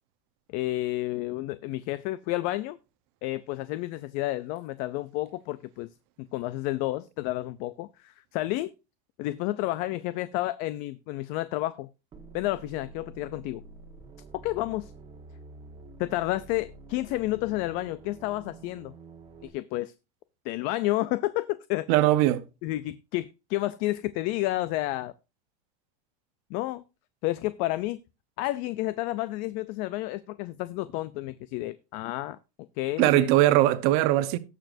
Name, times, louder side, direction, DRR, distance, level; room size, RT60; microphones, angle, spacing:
voice 1, 0.5-2.8 3.2-5.9 6.2-8.7 9.2-11.9 12.3-13.6 14.4-14.9 16.0-18.9 19.4-19.9 20.4-21.9 22.6-25.1 26.5-26.8 27.2-28.0 28.4-32.4 32.8-33.3, left 17 dB, 40° left, 0.4 m, -30 dB
sound 1, 12.1-19.5, right 3 dB, 20° right, 1.4 m, -48 dB
voice 2, 21.9-22.4 33.0-34.4, right 15 dB, 50° right, 0.9 m, -20 dB
18.0 x 6.8 x 2.6 m
supercardioid pair, 170°, 21 cm